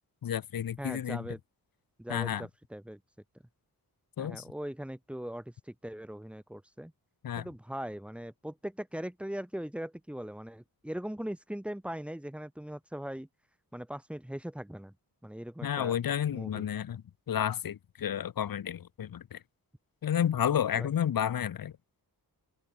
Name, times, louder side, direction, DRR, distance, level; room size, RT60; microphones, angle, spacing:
voice 1, 0.2-1.3 2.1-2.5 4.2-4.4 7.2-7.5 15.6-19.4 20.0-21.7, left 9 dB, 60° left, 1.0 m, -31 dB
voice 2, 0.8-1.4 2.0-3.0 4.2-6.9 7.3-13.3 13.7-14.9 15.2-15.9 16.3-16.7 20.7-20.9, equal, 5° right, 1.6 m, -40 dB
open air
wide cardioid pair, 175°, 39 cm